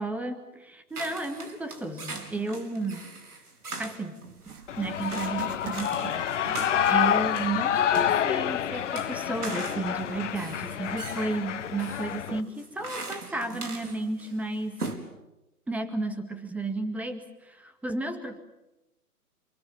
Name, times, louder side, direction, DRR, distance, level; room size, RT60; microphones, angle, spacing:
voice 1, 0.0-3.1 3.8-14.8 15.7-18.4, right 2 dB, 5° right, 8 dB, 2.0 m, -33 dB
sound 1, 0.9-14.4 14.6-15.0, right 3 dB, 75° right, 4.9 m, -41 dB
Writing, 4.4-7.5 7.8-7.9 8.6-8.7, right 9 dB, 35° right, 2.6 m, -43 dB
Shout / Cheering, 4.7-12.4, left 9 dB, 50° left, 1.2 m, -28 dB
27.0 x 25.0 x 7.3 m, 0.96 s
figure-of-eight pair, 130°, 45 cm